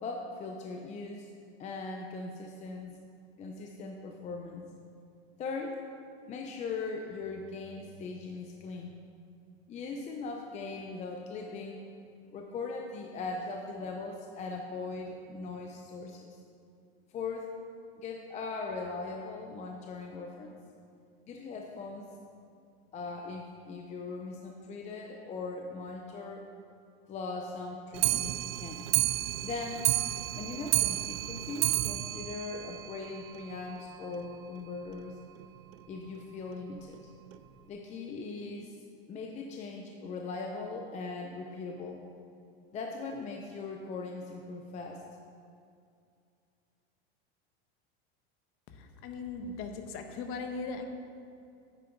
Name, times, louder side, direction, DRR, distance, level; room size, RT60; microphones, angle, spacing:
voice 1, 0.0-1.3 1.6-3.0 3.4-4.7 5.4-5.8 6.3-8.9 9.7-11.8 12.3-16.4 17.1-17.5 18.0-20.6 21.3-22.1 22.9-26.4 27.1-28.9 29.4-29.9 30.3-35.2 35.9-37.0 37.6-38.8 39.1-42.1 42.7-45.0, left 4 dB, 20° left, 2 dB, 0.6 m, -40 dB
Clock, 27.9-33.4 33.8-33.9 34.1-34.2 34.6-34.7 34.9-35.0 35.7-35.8 36.5-36.6 37.3-37.4, right 16 dB, 70° right, 0.6 m, -31 dB
voice 2, 49.0-50.9, left 4 dB, 40° left, 6 dB, 1.1 m, -38 dB
9.3 x 9.1 x 4.5 m, 2.4 s
supercardioid pair, 140°, 32 cm